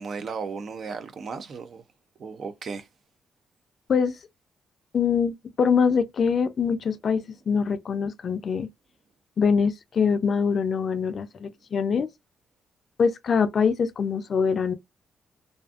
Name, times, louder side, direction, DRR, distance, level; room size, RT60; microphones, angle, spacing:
voice 1, 0.0-1.8 2.2-2.9, right 5 dB, 55° right, 0.5 m, -35 dB
voice 2, 4.9-8.7 9.4-12.1 13.0-14.7, left 6 dB, 50° left, 0.4 m, -24 dB
2.5 x 2.5 x 2.4 m
cardioid pair, 105°, 0 cm